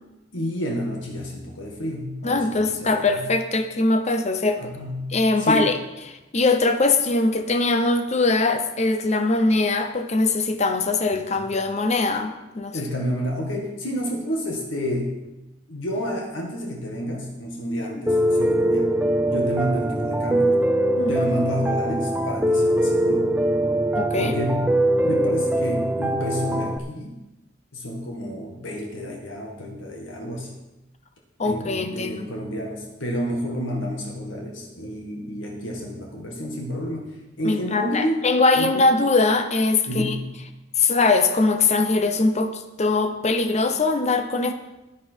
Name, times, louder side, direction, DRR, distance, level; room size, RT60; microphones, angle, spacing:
voice 1, 0.3-3.3 4.6-5.7 12.7-15.1 15.7-18.9 19.3-20.6 20.9-23.3 24.2-27.2 27.7-30.5 31.4-38.2 38.5-39.0 39.9-40.2, equal, 85° left, 0 dB, 1.9 m, -30 dB
voice 2, 2.2-4.7 5.1-5.8 6.3-12.8 21.0-21.3 24.0-24.3 31.4-32.3 37.4-40.2 40.8-44.5, left 3 dB, 35° left, 8 dB, 0.8 m, -21 dB
Piano, 18.1-26.8, right 1 dB, 5° right, 0.5 m, -22 dB
11.0 x 10.5 x 4.5 m, 1.0 s
head